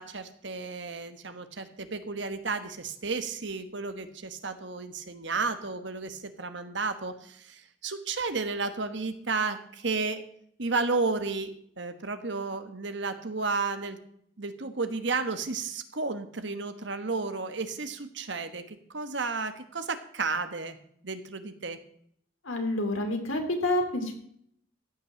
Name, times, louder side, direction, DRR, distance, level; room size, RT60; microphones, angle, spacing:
voice 1, 0.0-10.2 10.6-14.0 14.4-20.8 21.0-21.8, right 4 dB, 65° right, 9 dB, 1.3 m, -32 dB
voice 2, 22.4-24.2, left 1 dB, 85° left, 4 dB, 2.9 m, -28 dB
15.5 x 6.2 x 7.6 m, 0.67 s
head